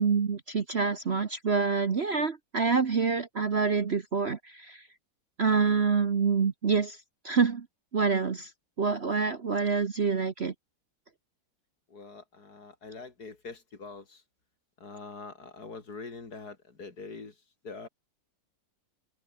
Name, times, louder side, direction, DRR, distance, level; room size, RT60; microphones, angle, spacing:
voice 1, 0.0-4.8 5.4-7.0 7.2-7.7 7.9-8.5 8.8-10.5, right 5 dB, 40° right, 1.2 m, -26 dB
voice 2, 11.9-14.2 14.8-17.4 17.6-17.9, left 4 dB, 55° left, 3.5 m, -44 dB
omnidirectional pair, 2.0 m